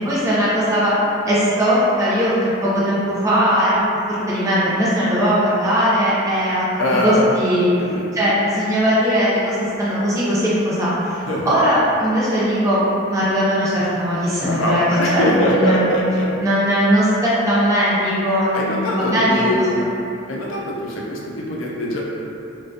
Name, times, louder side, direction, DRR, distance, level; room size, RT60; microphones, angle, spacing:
voice 1, 0.0-0.9 1.3-3.8 4.1-6.6 7.0-7.7 8.1-15.9 16.4-19.8, equal, 15° right, -9 dB, 0.4 m, -19 dB
voice 2, 6.8-7.3 7.8-8.2 11.3-11.5 14.4-16.3 18.5-19.9 20.3-22.0, left 1 dB, 80° left, -3 dB, 0.5 m, -22 dB
2.4 x 2.2 x 2.6 m, 2.8 s
head